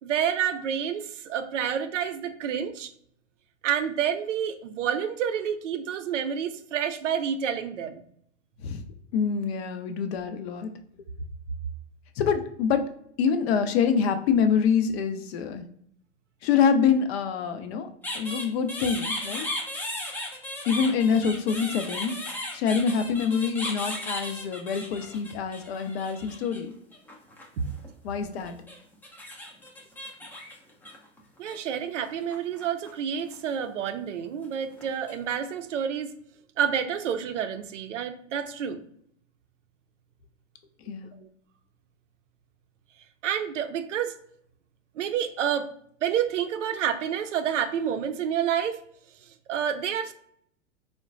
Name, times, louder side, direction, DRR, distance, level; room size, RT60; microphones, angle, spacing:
voice 1, 0.0-2.9 3.6-8.0 27.6-27.7 31.4-36.1 36.6-38.8 41.2-41.3 43.2-44.2 45.0-45.7 46.0-48.8 49.5-50.1, right 8 dB, 80° right, 8 dB, 0.5 m, -29 dB
voice 2, 9.1-10.7 12.2-12.9 13.2-15.6 16.4-17.9 18.1-19.5 20.7-22.2 22.5-26.7 28.0-28.6 40.8-41.2, left 6 dB, 60° left, 8 dB, 0.5 m, -25 dB
sound 1, 18.0-26.6 26.9-27.9 28.5-31.6 32.0-32.9 33.2-33.5 34.4-35.1, left 1 dB, 5° left, 0.4 m, -36 dB
3.7 x 2.1 x 2.4 m, 0.67 s
hypercardioid pair, 95°, 36 cm